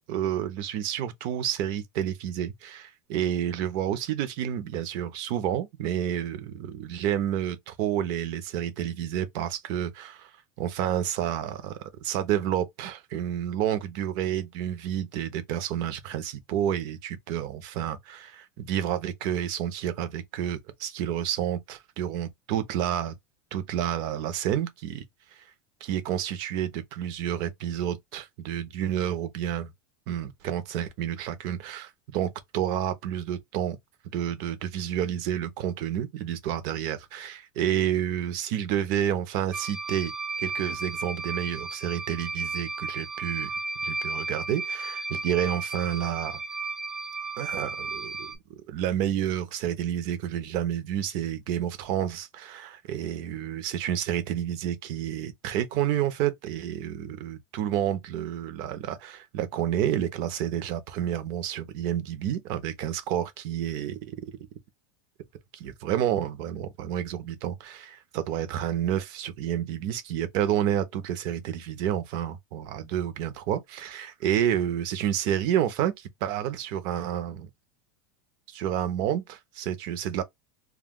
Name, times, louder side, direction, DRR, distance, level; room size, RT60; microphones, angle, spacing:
voice 1, 0.0-10.3 10.6-23.1 23.5-25.0 25.8-29.7 30.1-33.8 34.1-40.1 40.4-43.5 43.8-46.4 47.4-64.3 65.5-77.5 78.5-80.2, right 10 dB, 45° right, 0.7 m, -30 dB
sound 1, 39.5-48.4, right 3 dB, 5° right, 0.4 m, -34 dB
2.3 x 2.2 x 3.6 m
supercardioid pair, 155°, 10 cm